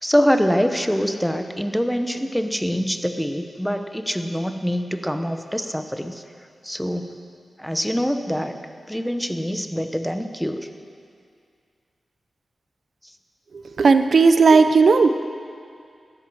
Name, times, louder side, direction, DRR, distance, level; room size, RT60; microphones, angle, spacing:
voice 1, 0.0-6.2 6.6-7.1 7.6-8.5 8.9-10.7, equal, ahead, 7 dB, 0.9 m, -24 dB
voice 2, 13.8-15.1, right 4 dB, 70° right, 9 dB, 0.7 m, -14 dB
13.0 x 9.9 x 6.4 m, 2.3 s
cardioid pair, 65°, 0 cm